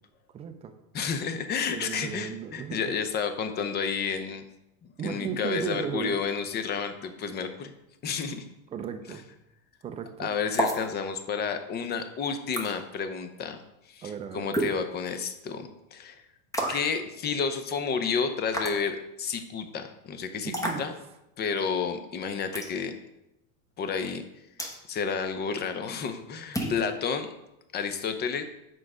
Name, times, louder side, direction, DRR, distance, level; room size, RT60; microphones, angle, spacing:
voice 1, 0.3-0.7 1.7-2.9 5.0-6.2 8.7-9.2 9.8-10.3 14.0-14.6 20.5-20.9, right 7 dB, 15° right, 7 dB, 0.3 m, -35 dB
voice 2, 0.9-4.4 5.0-7.7 8.0-8.4 10.2-13.6 13.9-16.2 16.7-20.5 20.8-20.9 21.4-22.9 23.8-24.2 24.9-27.3 27.7-28.4, left 6 dB, 25° left, 8 dB, 0.6 m, -31 dB
sound 1, 10.5-10.8 12.5-12.7 14.5-14.8 16.5-16.9 18.5-18.8 20.5-20.8 22.5-22.8 24.6-24.8 26.5-26.8, right 1 dB, 10° left, 1.0 m, -29 dB
6.4 x 4.6 x 4.9 m, 0.89 s
supercardioid pair, 125°, 42 cm